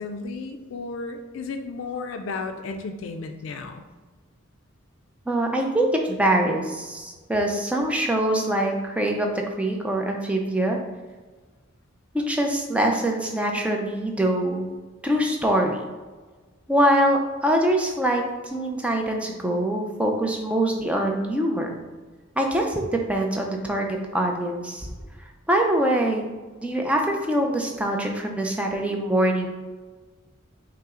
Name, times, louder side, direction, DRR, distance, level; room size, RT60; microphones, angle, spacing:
voice 1, 0.0-3.8, left 3 dB, 70° left, 6 dB, 0.4 m, -33 dB
voice 2, 5.3-10.8 12.1-14.7 15.0-15.9 16.7-18.2 18.5-21.8 22.4-24.9 25.5-26.3 26.6-29.5, right 1 dB, 5° right, 1 dB, 0.4 m, -24 dB
5.4 x 2.0 x 3.7 m, 1.3 s
head